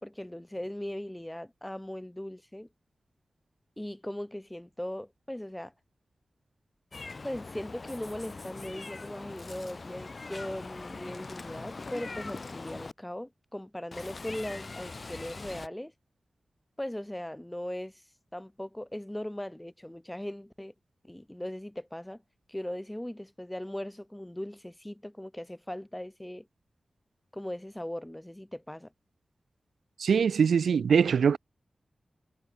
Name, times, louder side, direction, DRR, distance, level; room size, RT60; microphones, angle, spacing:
voice 1, 0.0-2.7 3.8-5.7 7.2-15.9 16.8-18.0 18.3-20.7 21.0-22.2 22.5-26.5 27.3-28.9, left 1 dB, 10° left, 2.6 m, -39 dB
Meow, 6.9-12.9 13.9-15.7, left 3 dB, 55° left, 1.9 m, -42 dB
voice 2, 30.0-31.4, right 6 dB, 90° right, 1.2 m, -23 dB
cardioid pair, 40°, 0 cm